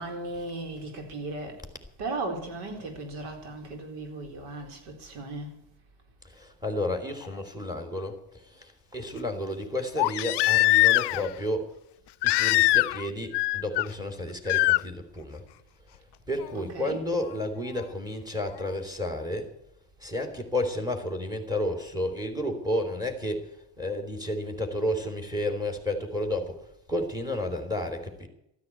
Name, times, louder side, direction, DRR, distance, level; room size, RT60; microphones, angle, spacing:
voice 1, 0.0-1.5 2.0-5.5 16.5-17.0, right 2 dB, 80° right, 4.5 m, -36 dB
voice 2, 6.2-11.7 12.2-15.4 16.3-19.5 20.0-28.3, left 1 dB, 10° right, 3.4 m, -31 dB
Crying sobbing, 7.2-7.3 10.0-11.3 12.2-13.1 13.3-13.9 14.5-14.8 16.4-16.5, left 20 dB, 55° left, 0.5 m, -22 dB
14.0 x 9.6 x 8.5 m
cardioid pair, 100°, 49 cm